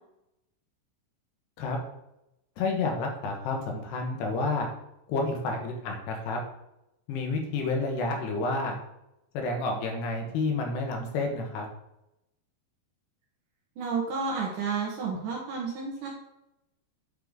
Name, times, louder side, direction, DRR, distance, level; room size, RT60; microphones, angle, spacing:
voice 1, 2.6-4.7 5.1-6.4 7.1-8.7 9.3-11.7, left 3 dB, 75° left, 2 dB, 3.3 m, -30 dB
voice 2, 13.8-16.1, right 5 dB, 65° right, -2 dB, 2.3 m, -31 dB
9.5 x 5.8 x 3.7 m, 0.86 s
omnidirectional pair, 5.0 m